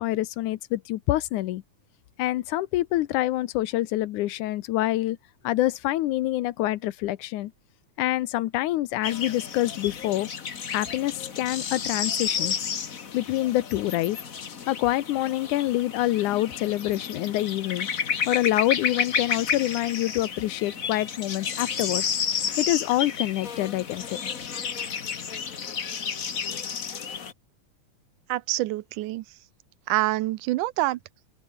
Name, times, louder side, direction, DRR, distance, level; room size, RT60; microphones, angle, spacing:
voice 1, 0.0-1.6 2.2-5.2 5.4-7.5 8.0-10.3 10.7-12.6 13.1-14.2 14.7-17.9 18.3-22.0 22.6-24.3, left 15 dB, 80° left, 2.3 m, -26 dB
sound 1, 9.0-27.3, left 6 dB, 45° left, 1.1 m, -31 dB
voice 2, 28.3-29.2 29.9-31.0, right 17 dB, 80° right, 2.3 m, -26 dB
open air
omnidirectional pair, 3.6 m